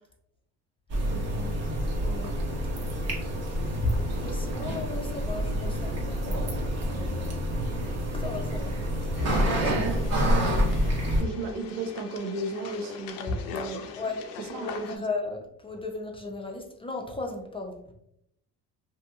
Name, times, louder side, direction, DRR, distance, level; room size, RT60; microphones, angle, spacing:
sound 1, 0.9-11.2, equal, 50° right, 0.9 m, -28 dB
voice 1, 0.9-1.6 2.0-2.3 9.6-10.0 11.2-13.9 14.4-15.0, right 3 dB, 75° right, 5 dB, 0.6 m, -35 dB
voice 2, 3.8-6.5 6.9-7.4 8.1-8.8 9.2-9.6 13.3-13.4 13.9-17.9, left 2 dB, 15° left, 2 dB, 0.4 m, -35 dB
sound 2, 9.1-15.0, left 5 dB, 80° left, 0.5 m, -41 dB
2.6 x 2.6 x 2.3 m, 0.73 s
supercardioid pair, 90°, 34 cm